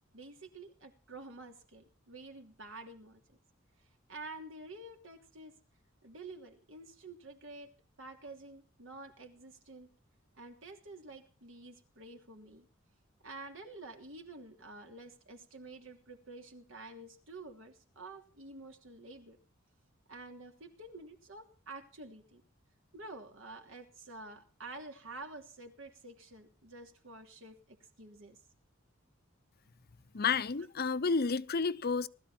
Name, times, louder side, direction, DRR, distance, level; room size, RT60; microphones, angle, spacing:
voice 1, 0.1-3.4 3.8-5.5 6.0-7.7 8.0-9.9 10.3-12.7 13.2-19.4 20.1-22.4 22.9-28.4, right 2 dB, 70° right, 3.0 m, -49 dB
voice 2, 30.1-32.1, left 5 dB, 50° left, 0.8 m, -30 dB
20.0 x 13.5 x 4.4 m
head